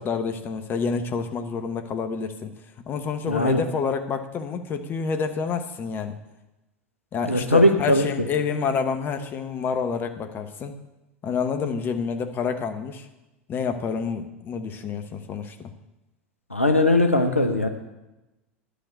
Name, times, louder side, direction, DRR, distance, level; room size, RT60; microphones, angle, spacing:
voice 1, 0.0-2.5 2.9-6.2 7.1-10.7 11.2-13.1 13.5-15.7, left 5 dB, 30° left, 7 dB, 1.0 m, -28 dB
voice 2, 3.3-3.6 7.3-8.1 16.5-17.7, left 1 dB, 90° left, 5 dB, 0.9 m, -19 dB
10.5 x 5.1 x 7.8 m, 1.0 s
figure-of-eight pair, 80°, 7 cm